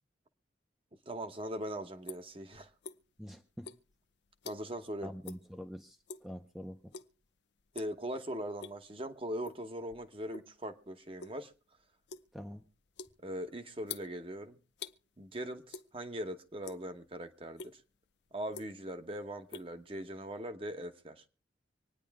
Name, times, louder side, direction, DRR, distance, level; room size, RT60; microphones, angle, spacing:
voice 1, 1.1-2.7 4.4-5.1 7.7-11.5 13.2-14.6 15.2-17.8 18.3-21.2, right 1 dB, 30° right, 1.0 m, -40 dB
sound 1, 1.4-3.3 3.6-4.9 5.2-5.5 5.8-6.4 6.9-7.3 7.6-8.0 8.4-9.0 9.4-10.6 10.9-15.0 15.7-16.3 16.5-17.1 17.6-17.7 18.3-19.0 19.3-20.4, left 5 dB, 70° left, 0.6 m, -47 dB
voice 2, 3.2-3.7 5.0-6.0 6.2-6.9 12.3-12.6, equal, ahead, 0.6 m, -45 dB
25.5 x 9.8 x 3.5 m
head